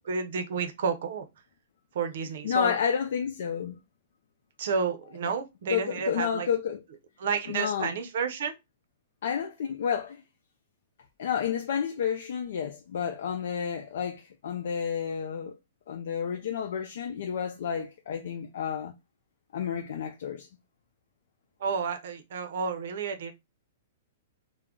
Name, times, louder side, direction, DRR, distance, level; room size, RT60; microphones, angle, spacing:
voice 1, 0.0-1.3 1.9-2.8 4.6-6.5 7.2-8.5 21.6-23.3, right 5 dB, 65° right, 0.5 m, -31 dB
voice 2, 2.4-3.8 5.7-6.8 7.5-7.9 9.2-10.2 11.2-15.5 15.9-18.9 19.5-20.5, left 8 dB, 70° left, 0.4 m, -30 dB
2.2 x 2.0 x 3.5 m
hypercardioid pair, 140°, 0 cm